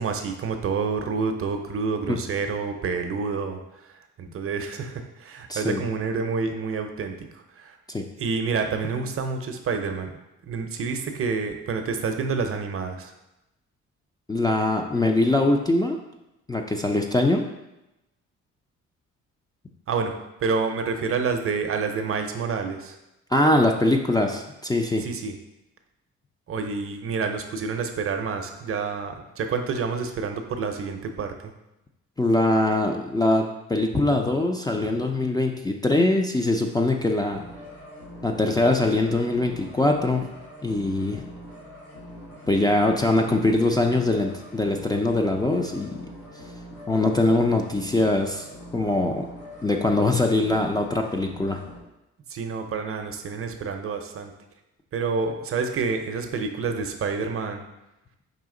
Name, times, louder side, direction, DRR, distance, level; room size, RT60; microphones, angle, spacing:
voice 1, 0.0-3.6 4.2-7.2 7.6-7.8 8.2-10.1 10.4-13.1 19.9-20.1 20.4-22.9 25.0-25.3 26.5-31.3 52.3-54.3 54.9-57.6, right 5 dB, 45° right, 6 dB, 0.6 m, -28 dB
voice 2, 5.5-5.8 7.9-8.0 14.3-16.0 16.5-17.4 23.3-25.1 32.2-37.4 38.2-40.2 40.6-41.2 42.5-46.0 46.9-48.5 48.7-49.3 49.6-51.6, left 2 dB, 15° left, 2 dB, 0.4 m, -22 dB
sound 1, 37.3-51.8, equal, 85° left, 1.7 m, -43 dB
4.9 x 2.8 x 3.7 m, 0.93 s
cardioid pair, 90°, 30 cm